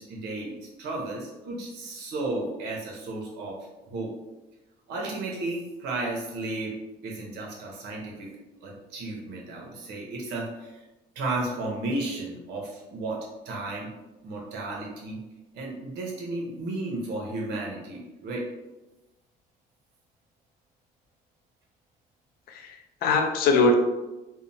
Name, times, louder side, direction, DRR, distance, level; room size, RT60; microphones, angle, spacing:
voice 1, 0.0-3.6 3.9-4.1 4.9-6.7 7.0-8.3 8.6-10.8 11.1-13.2 13.4-13.9 14.2-15.2 15.5-18.5, right 2 dB, 90° right, -2 dB, 0.8 m, -33 dB
voice 2, 22.5-23.7, left 3 dB, 65° left, 3 dB, 0.5 m, -22 dB
2.8 x 2.0 x 2.6 m, 1.1 s
cardioid pair, 110°, 17 cm